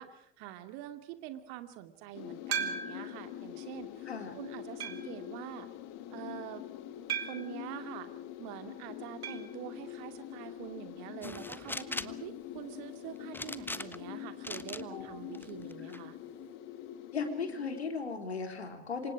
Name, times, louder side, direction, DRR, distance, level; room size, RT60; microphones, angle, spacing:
voice 1, 0.0-4.1 4.3-5.7 6.1-6.6 7.3-8.1 8.4-16.2, right 13 dB, 60° right, 8 dB, 2.5 m, -45 dB
sound 1, 2.1-17.8, left 11 dB, 60° left, 2.2 m, -45 dB
sound 2, 2.5-3.2 3.8-3.9 4.8-5.2 7.1-7.6 9.2-9.5 9.8-9.9 10.1-10.2 12.2-12.3, right 7 dB, 80° right, 2.2 m, -36 dB
voice 2, 4.1-4.4 11.2-11.4 14.9-15.4 17.1-19.1, left 4 dB, 85° left, 5 dB, 3.6 m, -37 dB
sound 3, 11.2-12.2 13.3-14.1 14.4-14.8 15.3-16.0, left 2 dB, 5° left, 1.3 m, -40 dB
28.0 x 25.0 x 4.9 m, 0.66 s
figure-of-eight pair, 65°, 31 cm